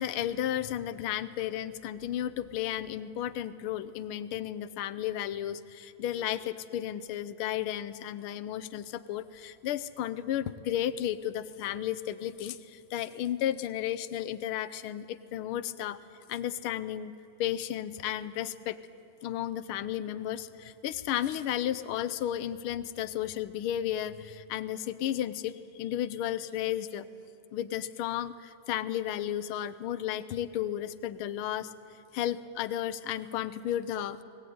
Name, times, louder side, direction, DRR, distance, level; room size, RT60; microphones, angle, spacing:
voice 1, 0.0-16.0 16.3-17.1 17.4-18.8 19.2-27.1 27.5-31.7 32.1-34.2, left 11 dB, 80° left, 14 dB, 1.6 m, -33 dB
21.0 x 17.5 x 9.4 m, 2.7 s
omnidirectional pair, 2.4 m